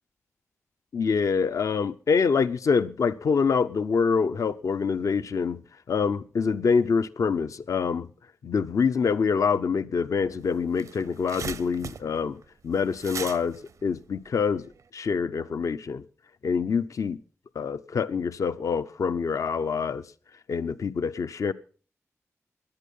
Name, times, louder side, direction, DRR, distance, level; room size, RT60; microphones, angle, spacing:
voice 1, 0.9-5.6 5.9-8.1 8.4-14.7 14.9-16.0 16.4-17.2 17.6-20.0 20.5-21.5, left 5 dB, 80° left, 0.6 m, -26 dB
sound 1, 10.2-10.3 10.5-14.8, right 6 dB, 85° right, 0.8 m, -39 dB
17.0 x 11.0 x 5.4 m
cardioid pair, 60°, 5 cm